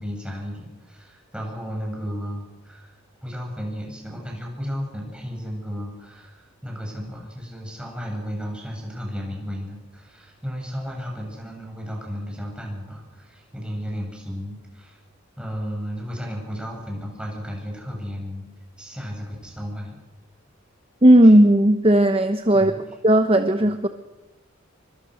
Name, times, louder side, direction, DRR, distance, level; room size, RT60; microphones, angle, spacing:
voice 1, 0.0-2.9 3.2-15.0 15.4-18.5 18.8-20.0 21.2-21.3 22.5-22.8, equal, 5° right, -1 dB, 7.9 m, -33 dB
voice 2, 21.0-22.7 23.0-23.9, right 1 dB, 30° right, 8 dB, 1.0 m, -15 dB
27.5 x 24.5 x 6.6 m, 1.0 s
head